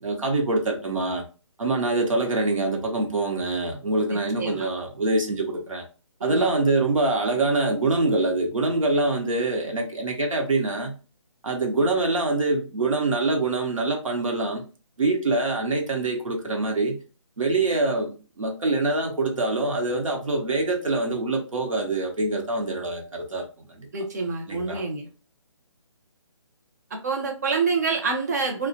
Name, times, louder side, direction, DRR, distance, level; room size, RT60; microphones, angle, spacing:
voice 1, 0.0-1.2 1.6-5.8 6.2-11.0 11.4-14.6 15.0-17.0 17.4-23.9 24.5-24.8, right 2 dB, 80° right, 0.7 m, -25 dB
voice 2, 4.1-4.7 6.2-6.5 23.9-25.1 27.0-28.7, right 4 dB, 35° right, 0.5 m, -27 dB
2.3 x 2.1 x 2.7 m
figure-of-eight pair, 150°, 17 cm